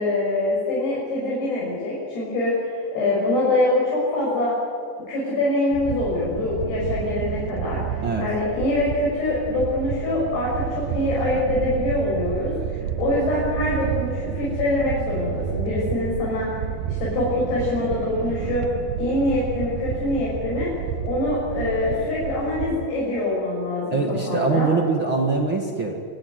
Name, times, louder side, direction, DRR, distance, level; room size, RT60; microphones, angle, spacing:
voice 1, 0.0-4.5 5.1-7.8 8.2-16.6 16.9-18.6 19.0-20.7 21.0-24.7, left 2 dB, 65° left, -6 dB, 8.4 m, -24 dB
sound 1, 5.7-22.9, right 9 dB, 70° right, 2.2 m, -30 dB
voice 2, 23.9-26.0, right 4 dB, 45° right, 2 dB, 1.6 m, -23 dB
27.0 x 19.0 x 9.6 m, 2.3 s
omnidirectional pair, 5.0 m